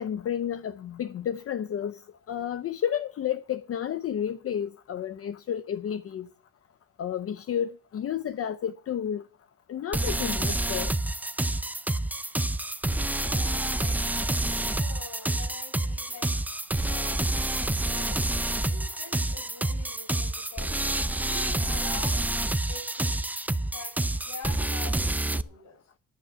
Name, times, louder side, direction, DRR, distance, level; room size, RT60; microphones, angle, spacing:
voice 1, 0.0-2.0 2.3-6.3 7.0-9.2 9.7-10.9, left 9 dB, 50° left, 0.7 m, -31 dB
sound 1, 9.9-25.4, right 1 dB, 5° right, 0.5 m, -28 dB
voice 2, 13.2-16.4 16.8-20.8 21.2-22.3 22.7-23.3 23.6-25.8, left 4 dB, 70° left, 6.2 m, -45 dB
10.5 x 6.9 x 8.0 m
cardioid pair, 90°, 30 cm